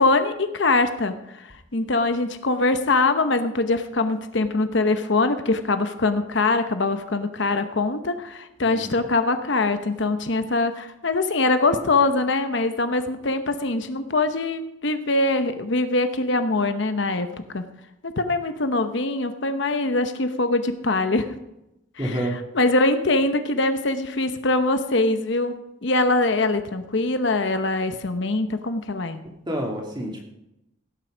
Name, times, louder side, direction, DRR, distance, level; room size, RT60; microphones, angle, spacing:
voice 1, 0.0-17.3 17.5-17.6 18.0-21.3 22.0-22.2 22.5-25.6 25.8-29.2, left 2 dB, 65° left, 9 dB, 0.9 m, -23 dB
voice 2, 8.6-9.0 22.0-22.4 29.5-30.2, right 1 dB, 20° right, 1 dB, 2.4 m, -28 dB
17.0 x 7.8 x 5.0 m, 0.87 s
head